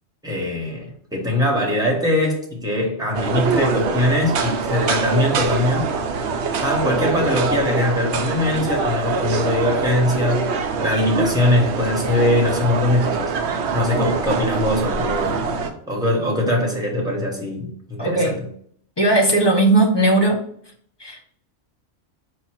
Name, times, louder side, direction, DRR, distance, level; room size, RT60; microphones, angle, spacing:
voice 1, 0.2-5.9 6.6-10.5 10.8-13.3 13.7-15.4 15.9-18.4, left 1 dB, 5° right, -2 dB, 1.1 m, -21 dB
sound 1, 3.1-15.7, right 5 dB, 70° right, 0.8 m, -24 dB
voice 2, 18.0-18.4 19.0-20.4 21.0-21.2, right 2 dB, 25° left, -1 dB, 0.7 m, -17 dB
4.7 x 2.4 x 4.4 m, 0.63 s
omnidirectional pair, 1.2 m